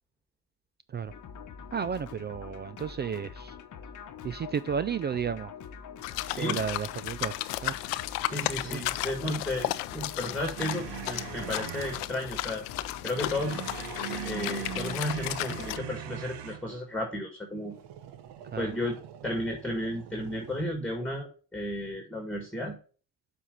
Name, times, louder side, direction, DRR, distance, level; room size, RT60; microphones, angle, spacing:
sound 1, 1.1-15.8, left 6 dB, 40° left, 1.1 m, -45 dB
voice 1, 1.7-3.6 4.2-5.5 6.4-7.3 7.6-7.7 8.6-8.8 18.5-18.7, right 7 dB, 25° right, 0.4 m, -32 dB
sound 2, 6.0-15.8, left 17 dB, 75° left, 0.6 m, -34 dB
voice 2, 6.2-6.6 8.3-12.7 13.0-13.6 14.2-17.7 18.6-22.8, left 1 dB, ahead, 2.1 m, -33 dB
sound 3, 10.6-12.1 13.2-16.7 17.6-20.7, right 10 dB, 55° right, 1.0 m, -41 dB
7.0 x 4.4 x 6.6 m
hypercardioid pair, 60°, 47 cm